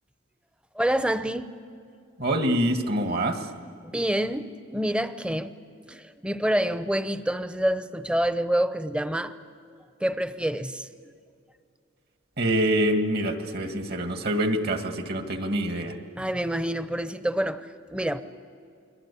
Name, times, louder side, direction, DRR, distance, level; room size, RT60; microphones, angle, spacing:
voice 1, 0.7-1.5 3.8-5.5 5.9-9.4 10.0-10.9 16.2-18.2, right 1 dB, 5° right, 12 dB, 0.8 m, -27 dB
voice 2, 2.2-3.4 12.4-15.9, right 1 dB, 50° right, 6 dB, 2.0 m, -25 dB
29.5 x 22.0 x 8.5 m, 2.4 s
head